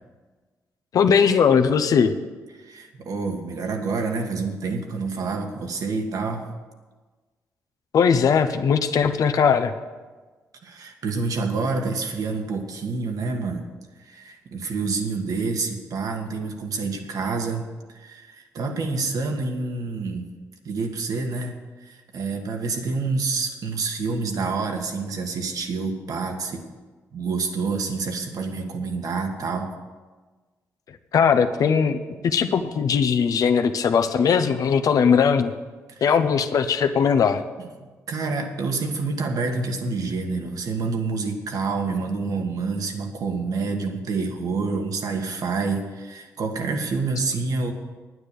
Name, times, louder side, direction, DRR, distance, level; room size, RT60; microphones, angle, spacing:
voice 1, 0.9-2.1 7.9-9.7 31.1-35.5 36.0-37.4, left 6 dB, 65° left, 8 dB, 0.9 m, -19 dB
voice 2, 2.6-6.5 10.6-13.6 14.0-20.3 20.7-21.6 21.8-26.6 27.1-29.7 35.9-36.2 37.6-37.7 38.1-47.7, right 4 dB, 65° right, 4 dB, 1.7 m, -28 dB
9.7 x 9.6 x 6.9 m, 1.3 s
supercardioid pair, 55°, 7 cm